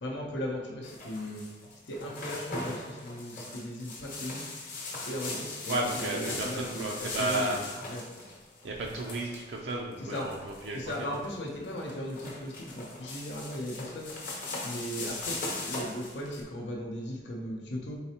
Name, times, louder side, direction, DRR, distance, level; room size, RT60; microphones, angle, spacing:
voice 1, 0.0-1.4 1.9-4.5 5.1-7.6 7.9-8.0 10.0-10.3 10.7-14.1 14.6-18.0, equal, 75° left, -1 dB, 0.6 m, -37 dB
sound 1, 0.8-16.4, left 2 dB, 45° left, 0.9 m, -39 dB
voice 2, 5.7-7.7 8.6-11.1, right 2 dB, 70° right, -1 dB, 0.4 m, -33 dB
4.1 x 3.9 x 2.8 m, 1.2 s
head